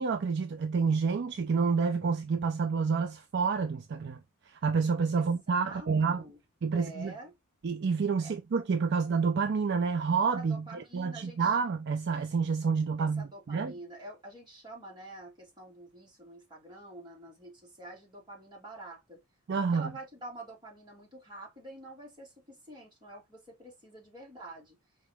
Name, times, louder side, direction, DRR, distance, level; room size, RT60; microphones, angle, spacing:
voice 1, 0.0-4.2 4.5-6.2 6.6-7.1 7.6-13.7 19.5-19.9, right 5 dB, 50° right, 0.4 m, -29 dB
voice 2, 5.1-6.4 6.7-7.3 8.2-8.3 10.4-11.6 13.0-19.2 19.7-24.8, right 2 dB, 20° right, 2.0 m, -47 dB
4.5 x 3.0 x 3.4 m
head